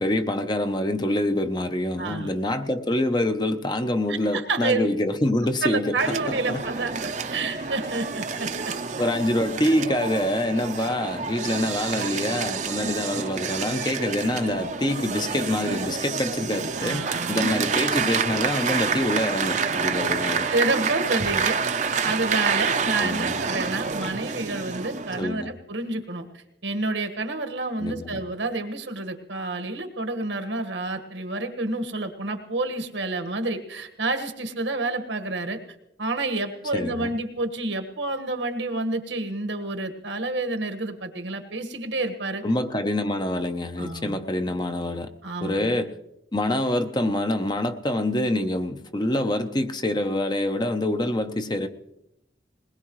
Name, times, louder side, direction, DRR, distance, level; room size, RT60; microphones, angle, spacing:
voice 1, 0.0-6.0 6.3-6.6 9.0-20.5 23.0-23.4 25.2-25.5 27.8-28.2 36.7-37.1 42.4-45.1 45.4-45.9 46.3-51.7, left 1 dB, 25° left, 0.8 m, -26 dB
voice 2, 2.0-2.3 4.1-4.9 5.6-6.9 7.3-8.7 16.8-17.4 20.5-35.6 36.0-42.4 43.8-44.2 45.2-45.8, right 2 dB, 85° right, 1.6 m, -29 dB
sound 1, 6.0-25.2, right 5 dB, 40° right, 0.7 m, -28 dB
21.0 x 20.5 x 3.2 m
head